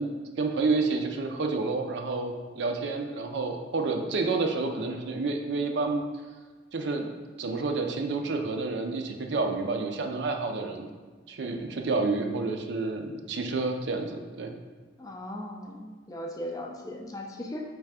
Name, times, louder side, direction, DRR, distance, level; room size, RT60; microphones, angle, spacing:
voice 1, 0.0-6.0 6.7-7.1 7.4-10.9 11.3-14.6, right 3 dB, 65° right, 4 dB, 0.4 m, -29 dB
voice 2, 15.0-17.6, left 1 dB, 20° left, 2 dB, 0.3 m, -38 dB
3.4 x 3.2 x 4.8 m, 1.4 s
head